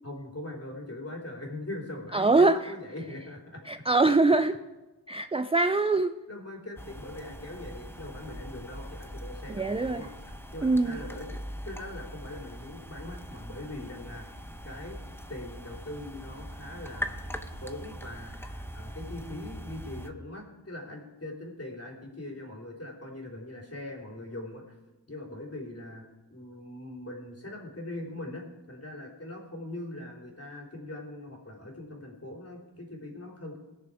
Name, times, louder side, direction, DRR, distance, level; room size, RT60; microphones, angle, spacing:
voice 1, 0.0-3.6 6.3-15.0 15.3-24.8 25.1-33.6, left 1 dB, 30° left, -1 dB, 3.3 m, -41 dB
voice 2, 2.1-2.6 3.7-4.5 5.1-6.1 9.6-10.0 10.6-11.0, right 3 dB, 15° right, 11 dB, 0.3 m, -23 dB
sound 1, 6.8-20.1, equal, 5° left, 0.8 m, -41 dB
20.0 x 6.8 x 4.8 m, 1.1 s
wide cardioid pair, 70°, 45 cm